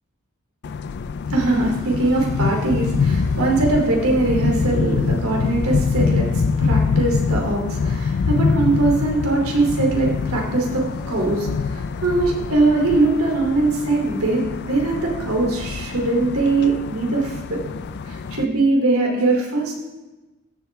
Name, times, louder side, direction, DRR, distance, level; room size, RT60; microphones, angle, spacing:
sound 1, 0.6-18.4, left 5 dB, 55° left, 0.4 m, -24 dB
voice 1, 1.3-17.6 17.9-19.7, right 2 dB, 85° right, -1 dB, 2.9 m, -21 dB
15.0 x 7.9 x 3.4 m, 1.1 s
head